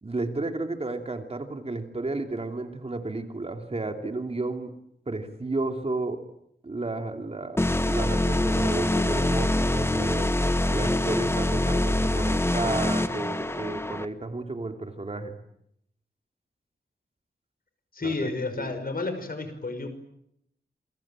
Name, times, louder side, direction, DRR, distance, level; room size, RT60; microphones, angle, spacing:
voice 1, 0.0-4.7 5.1-6.2 6.6-7.6 7.9-10.3 10.7-15.4 18.0-18.3 18.6-18.7, right 2 dB, 35° right, 5 dB, 3.0 m, -32 dB
sound 1, 7.6-14.0, left 1 dB, 15° left, 1.4 m, -25 dB
voice 2, 17.9-19.9, left 3 dB, 60° left, 9 dB, 5.6 m, -31 dB
28.5 x 23.0 x 9.0 m, 0.77 s
wide cardioid pair, 120°, 17 cm